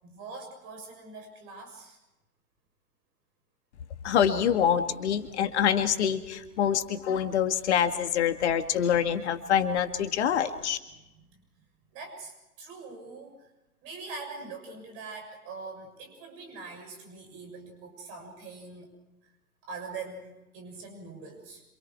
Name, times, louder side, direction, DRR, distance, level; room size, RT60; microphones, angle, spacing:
voice 1, 0.0-2.0 11.2-11.4 11.9-13.5 13.8-18.9 19.6-21.6, right 4 dB, 30° right, 4 dB, 6.8 m, -43 dB
voice 2, 4.0-10.8, left 8 dB, 50° left, 8 dB, 2.0 m, -25 dB
27.5 x 27.5 x 4.7 m, 0.95 s
figure-of-eight pair, 115°, 45 cm